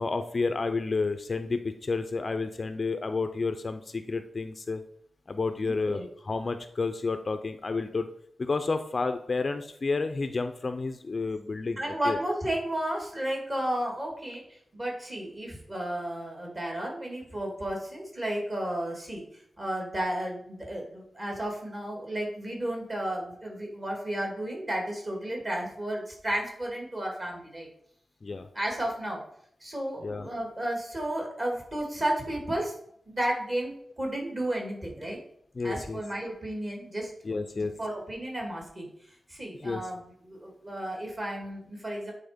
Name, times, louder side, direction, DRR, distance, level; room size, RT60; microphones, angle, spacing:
voice 1, 0.0-4.8 5.3-8.1 8.4-12.2 28.2-28.5 30.0-30.3 35.6-36.0 37.2-37.7 39.6-39.8, left 3 dB, 35° left, 8 dB, 0.4 m, -30 dB
voice 2, 5.6-6.1 11.8-27.7 28.5-29.2 29.6-32.8 33.1-35.2 35.6-38.9 39.3-42.1, right 1 dB, 30° right, 0 dB, 2.5 m, -33 dB
9.3 x 4.1 x 5.1 m, 0.67 s
wide cardioid pair, 155°, 0 cm